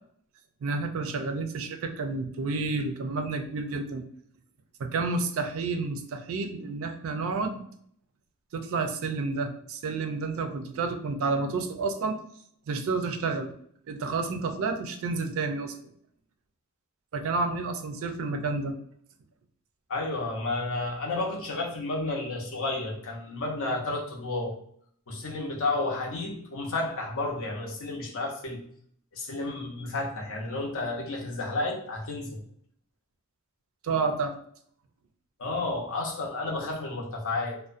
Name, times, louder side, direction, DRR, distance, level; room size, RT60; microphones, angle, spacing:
voice 1, 0.6-4.0 4.8-7.6 8.5-12.2 12.7-13.5 13.9-15.9 17.1-18.7 33.8-34.3, right 3 dB, 65° right, 6 dB, 0.4 m, -30 dB
voice 2, 19.9-24.6 25.1-28.6 29.1-32.4 35.4-37.6, left 2 dB, 65° left, 0 dB, 0.7 m, -31 dB
2.4 x 2.1 x 2.4 m, 0.64 s
head